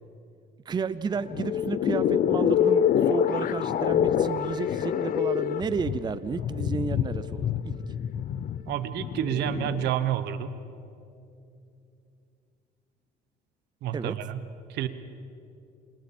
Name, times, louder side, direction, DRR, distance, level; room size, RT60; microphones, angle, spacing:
voice 1, 0.7-7.8 13.9-14.2, right 5 dB, 25° right, 15 dB, 0.6 m, -32 dB
sound 1, 1.1-9.9, left 9 dB, 55° left, 0.8 m, -26 dB
voice 2, 8.7-10.6 13.8-14.4 14.7-14.9, right 11 dB, 80° right, 12 dB, 1.1 m, -29 dB
28.5 x 26.5 x 4.4 m, 2.7 s
cardioid pair, 110°, 17 cm